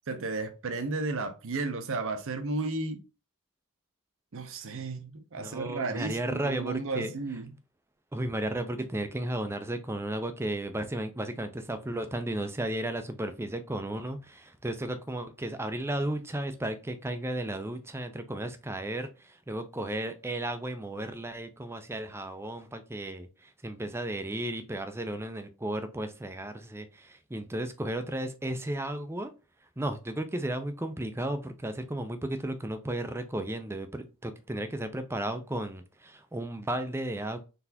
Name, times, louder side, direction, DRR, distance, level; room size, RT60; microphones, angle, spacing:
voice 1, 0.1-3.0 4.3-7.5, right 3 dB, 60° right, 0.7 m, -33 dB
voice 2, 5.4-7.1 8.1-23.3 23.6-29.3 29.8-37.4, right 1 dB, 10° right, 0.5 m, -34 dB
4.0 x 3.3 x 2.8 m
head